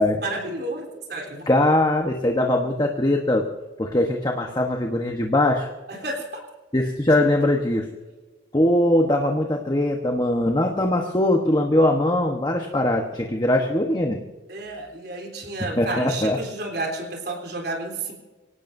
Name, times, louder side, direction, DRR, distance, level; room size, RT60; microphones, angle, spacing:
voice 1, 0.2-1.5 5.9-6.4 14.5-18.1, right 2 dB, 55° right, 2 dB, 3.6 m, -31 dB
voice 2, 1.5-3.5 3.8-5.7 6.7-7.9 8.5-14.2 15.8-16.4, left 1 dB, 20° left, 2 dB, 1.1 m, -21 dB
24.5 x 17.5 x 2.7 m, 1.2 s
head